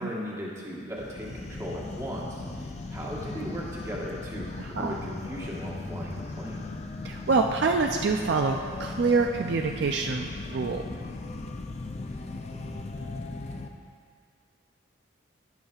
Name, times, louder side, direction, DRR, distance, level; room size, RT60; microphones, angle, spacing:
voice 1, 0.0-6.6, equal, 15° right, -4 dB, 1.3 m, -37 dB
sound 1, 1.0-13.7, left 2 dB, 35° left, 0.4 m, -38 dB
voice 2, 4.6-5.0 7.0-10.8, right 4 dB, 55° right, 3 dB, 0.4 m, -26 dB
11.5 x 10.5 x 2.4 m, 2.2 s
head